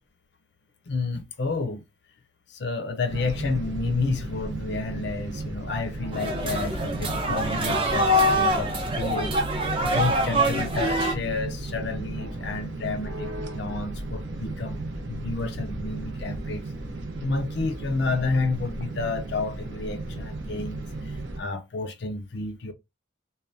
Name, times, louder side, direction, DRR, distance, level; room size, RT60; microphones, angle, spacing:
voice 1, 0.9-1.8 2.5-16.7 17.2-22.7, left 3 dB, 55° left, 0.5 m, -30 dB
sound 1, 3.1-21.4, right 2 dB, 65° right, 0.6 m, -34 dB
sound 2, 6.1-11.1, equal, 25° right, 0.7 m, -25 dB
3.2 x 2.2 x 2.6 m
head